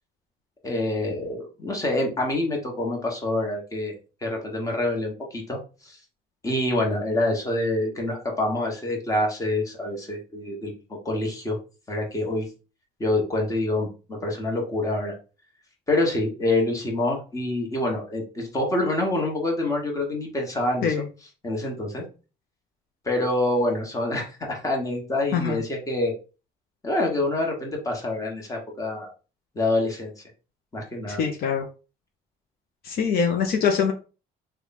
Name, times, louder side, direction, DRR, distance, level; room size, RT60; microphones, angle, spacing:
voice 1, 0.6-3.9 4.2-5.6 5.8-6.0 6.4-10.7 11.0-11.6 11.9-12.5 13.0-15.1 15.9-20.9 21.4-22.0 23.0-26.1 26.8-29.1 29.5-30.1 30.7-31.2, left 2 dB, 20° left, 0 dB, 1.2 m, -26 dB
voice 2, 31.1-31.7 32.8-33.9, left 6 dB, 65° left, 4 dB, 0.5 m, -23 dB
2.9 x 2.2 x 4.0 m, 0.34 s
cardioid pair, 110°, 17 cm